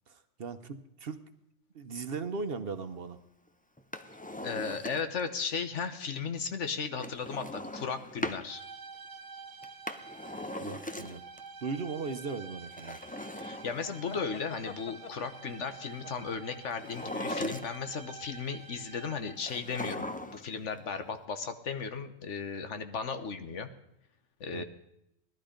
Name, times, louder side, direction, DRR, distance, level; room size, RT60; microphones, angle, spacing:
voice 1, 0.1-1.2 1.7-3.2 10.6-11.2 11.6-13.0 24.5-24.6, right 4 dB, 55° right, 9 dB, 1.0 m, -38 dB
Drawer open or close, 3.8-5.3 7.0-8.5 9.6-11.4 12.7-14.3 16.7-18.0 19.4-20.5 20.8-20.9, left 1 dB, 10° left, 0.5 m, -39 dB
voice 2, 4.4-8.6 13.4-23.7 24.4-24.6, left 5 dB, 75° left, 9 dB, 1.4 m, -36 dB
sound 1, 8.4-19.6, right 4 dB, 80° right, 1.2 m, -48 dB
sound 2, 14.0-17.7, left 5 dB, 40° left, 0.7 m, -48 dB
18.0 x 12.0 x 5.1 m, 0.80 s
omnidirectional pair, 1.3 m